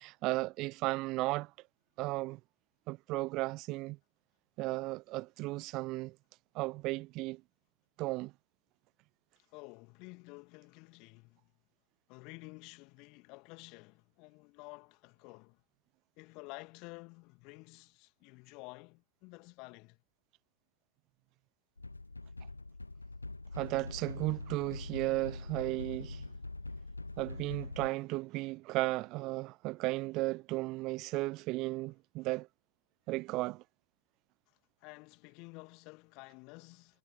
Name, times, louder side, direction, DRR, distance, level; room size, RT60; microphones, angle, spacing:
voice 1, 0.0-1.5 2.0-2.4 2.9-4.0 4.6-6.2 6.5-7.4 8.0-8.3 23.5-26.2 27.2-32.5 33.1-33.6, right 21 dB, 40° right, 0.5 m, -35 dB
voice 2, 9.5-11.5 12.1-15.6 16.2-20.0 34.5-37.0, left 28 dB, 45° left, 2.3 m, -51 dB
sound 1, 21.8-27.9, left 2 dB, 80° left, 1.2 m, -44 dB
figure-of-eight pair, 90°, 0 cm